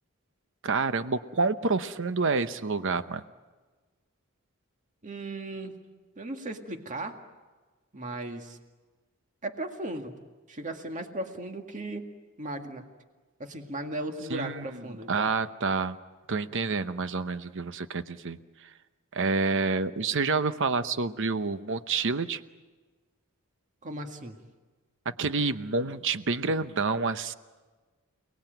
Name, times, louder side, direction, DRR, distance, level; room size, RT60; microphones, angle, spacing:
voice 1, 0.6-3.2 14.3-14.6 15.1-16.0 16.3-18.7 19.1-22.4 25.2-27.3, right 4 dB, 60° right, 12 dB, 0.9 m, -28 dB
voice 2, 5.0-5.8 6.2-7.2 7.9-8.6 9.4-10.1 10.5-12.1 12.4-12.8 13.4-15.3 23.8-24.4, right 1 dB, 35° right, 5 dB, 2.0 m, -36 dB
29.5 x 19.5 x 9.2 m, 1.3 s
head